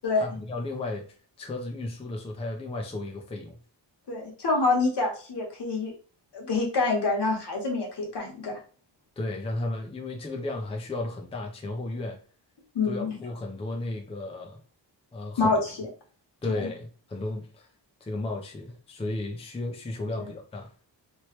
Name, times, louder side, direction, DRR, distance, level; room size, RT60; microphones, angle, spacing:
voice 1, 0.2-1.0 1.4-3.6 9.2-12.2 12.8-14.6 15.1-15.5 16.4-17.7 18.0-20.7, left 2 dB, 15° left, 1 dB, 0.5 m, -34 dB
voice 2, 4.1-5.9 6.3-8.6 12.7-13.2 15.4-15.9 16.5-16.7 20.2-20.3, left 3 dB, 65° left, 0 dB, 1.2 m, -26 dB
3.1 x 3.0 x 2.9 m, 0.40 s
wide cardioid pair, 140°, 44 cm